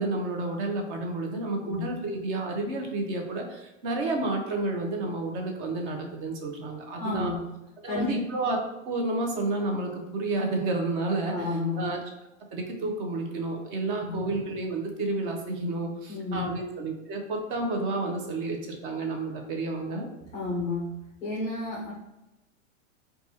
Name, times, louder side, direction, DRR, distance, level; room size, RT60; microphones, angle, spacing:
voice 1, 0.0-7.3 7.8-12.0 12.5-20.1, right 2 dB, 40° right, 2 dB, 0.6 m, -30 dB
voice 2, 7.0-7.4 7.8-8.1 11.3-11.8 14.0-14.2 16.1-16.4 20.3-20.9 21.2-21.9, left 3 dB, 20° left, -5 dB, 0.3 m, -31 dB
4.1 x 2.3 x 2.8 m, 0.96 s
hypercardioid pair, 130°, 40 cm